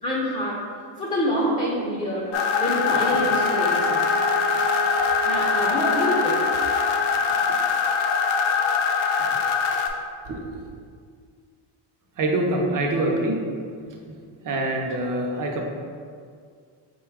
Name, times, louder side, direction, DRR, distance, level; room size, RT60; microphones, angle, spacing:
voice 1, 0.0-0.7 1.0-4.2 5.2-6.4, equal, 15° left, -5 dB, 0.5 m, -26 dB
Bowed string instrument, 2.2-7.2, right 6 dB, 80° right, 0.7 m, -33 dB
sound 1, 2.3-9.9, left 6 dB, 75° left, 0.6 m, -23 dB
voice 2, 10.2-10.6 12.2-13.4 13.9-14.0 14.4-15.6, right 1 dB, 40° right, 1 dB, 0.7 m, -25 dB
4.2 x 2.3 x 4.6 m, 2.1 s
cardioid pair, 125°, 47 cm